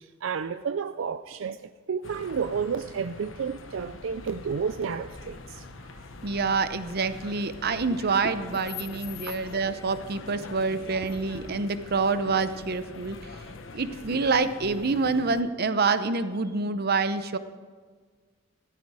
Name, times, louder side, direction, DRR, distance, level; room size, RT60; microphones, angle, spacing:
voice 1, 0.0-5.6, right 6 dB, 85° right, 0.4 m, -31 dB
sound 1, 2.0-15.4, left 3 dB, 80° left, 1.0 m, -43 dB
voice 2, 6.2-13.2 13.7-17.4, right 4 dB, 55° right, 0.8 m, -27 dB
14.5 x 13.5 x 4.9 m
head